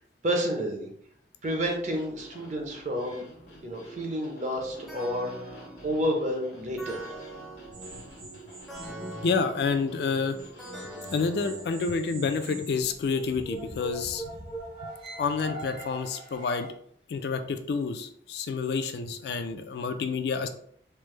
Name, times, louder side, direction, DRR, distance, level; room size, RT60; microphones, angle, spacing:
voice 1, 0.2-0.9 1.4-3.2 3.6-7.0, equal, 40° right, 1 dB, 0.6 m, -30 dB
sound 1, 1.4-11.3, equal, 85° left, 0.9 m, -50 dB
sound 2, 4.9-12.5, right 1 dB, ahead, 0.5 m, -44 dB
sound 3, 7.7-9.7 10.0-16.7, right 2 dB, 80° right, 1.2 m, -42 dB
voice 2, 9.2-10.4 11.1-14.3 15.2-16.7 17.1-20.5, left 5 dB, 65° left, 7 dB, 0.3 m, -29 dB
3.2 x 2.0 x 3.1 m, 0.64 s
head